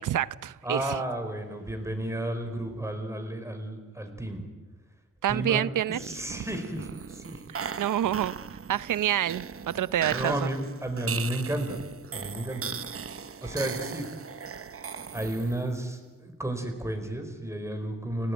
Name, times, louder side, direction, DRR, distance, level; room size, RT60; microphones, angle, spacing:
voice 1, 0.0-0.9 5.2-6.0 7.5-8.3 8.7-10.5, right 11 dB, 85° right, 0.7 m, -27 dB
voice 2, 0.6-4.4 5.3-5.7 6.0-7.4 10.1-11.8 12.1-12.7 13.4-14.1 15.1-18.3, right 1 dB, 10° right, 4.4 m, -32 dB
sound 1, 5.9-15.8, right 6 dB, 50° right, 1.0 m, -38 dB
29.5 x 18.0 x 9.3 m
wide cardioid pair, 110°, 30 cm